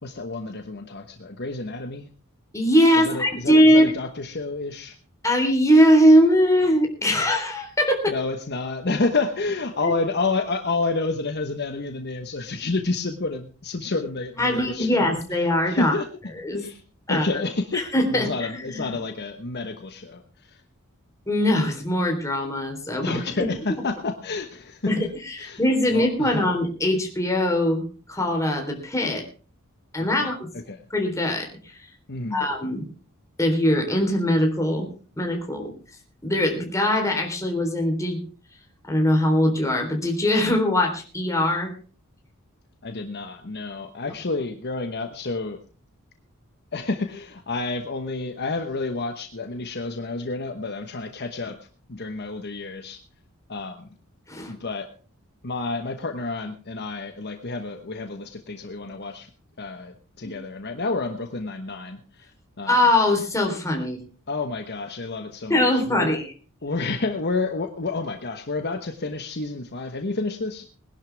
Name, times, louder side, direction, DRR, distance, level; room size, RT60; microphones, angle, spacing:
voice 1, 0.0-2.1 3.0-5.0 8.1-15.1 15.6-16.0 16.5-16.8 17.1-17.8 18.1-20.6 23.0-24.8 25.4-25.6 25.9-26.3 30.2-30.3 30.7-30.8 32.1-32.4 42.8-45.6 46.7-51.6 51.9-53.0 53.5-53.9 54.5-54.9 55.4-59.3 59.6-62.3 62.6-62.8 64.3-66.2 66.6-70.7, left 3 dB, 50° left, 6 dB, 1.2 m, -29 dB
voice 2, 2.5-3.9 5.2-8.0 9.8-9.9 14.4-16.0 16.4-16.7 17.1-17.4 17.7-18.9 21.3-23.2 24.9-29.2 29.9-30.5 30.9-31.9 32.3-32.8 33.4-34.9 35.2-35.7 36.2-38.2 38.9-41.7 54.3-54.5 60.2-60.3 62.7-64.0 65.5-66.3, equal, 15° left, 2 dB, 3.7 m, -21 dB
21.0 x 11.5 x 3.5 m, 0.38 s
head